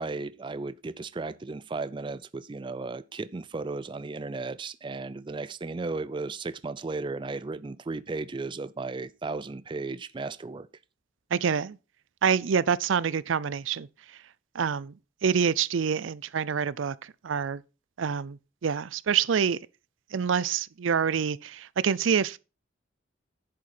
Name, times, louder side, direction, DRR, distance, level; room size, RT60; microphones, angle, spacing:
voice 1, 0.0-10.7, right 3 dB, 25° right, 0.4 m, -35 dB
voice 2, 11.3-11.8 12.2-13.9 14.5-14.9 15.2-17.6 18.0-19.6 20.1-22.4, right 7 dB, 80° right, 0.5 m, -26 dB
10.5 x 7.7 x 4.3 m
head